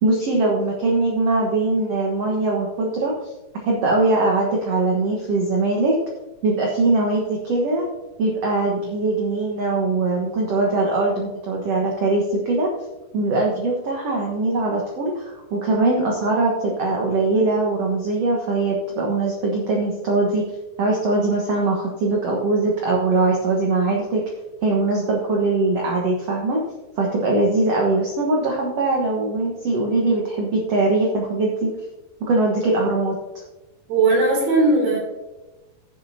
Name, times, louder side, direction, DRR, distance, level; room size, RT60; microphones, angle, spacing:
voice 1, 0.0-3.3 3.7-6.0 6.4-7.8 8.2-12.7 13.1-20.4 20.8-24.2 24.6-26.6 27.0-31.7 32.2-33.2, right 2 dB, 55° right, -2 dB, 1.9 m, -21 dB
voice 2, 33.9-35.0, right 3 dB, 80° right, -2 dB, 5.3 m, -18 dB
16.0 x 7.6 x 2.8 m, 1.0 s
omnidirectional pair, 4.3 m